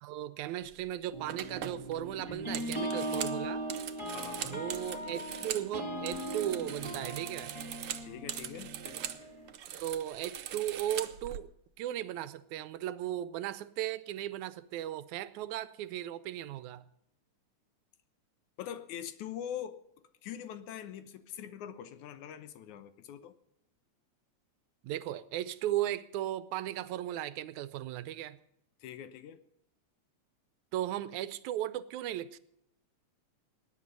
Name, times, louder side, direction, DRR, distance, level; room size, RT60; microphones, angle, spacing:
voice 1, 0.0-3.7 4.4-7.5 9.8-11.5 11.8-16.8 24.8-28.4 30.7-32.4, right 12 dB, 85° right, 2.1 m, -36 dB
sound 1, 0.7-0.9 1.3-5.7 6.0-9.2 9.5-11.4, right 11 dB, 65° right, 1.4 m, -41 dB
sound 2, 1.1-9.5, right 1 dB, 10° left, 2.0 m, -39 dB
voice 2, 4.1-4.6 8.0-8.8 18.6-19.8 20.2-23.3 28.8-29.4, left 10 dB, 90° left, 2.4 m, -43 dB
19.5 x 9.7 x 5.4 m
omnidirectional pair, 3.3 m